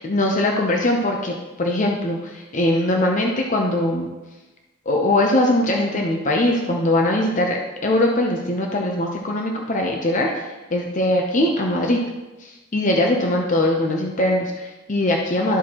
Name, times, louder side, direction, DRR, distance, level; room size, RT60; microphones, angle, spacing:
voice 1, 0.0-4.1 4.9-12.0 12.4-15.6, left 1 dB, 35° left, 1 dB, 0.7 m, -21 dB
12.0 x 4.6 x 3.0 m, 1.1 s
head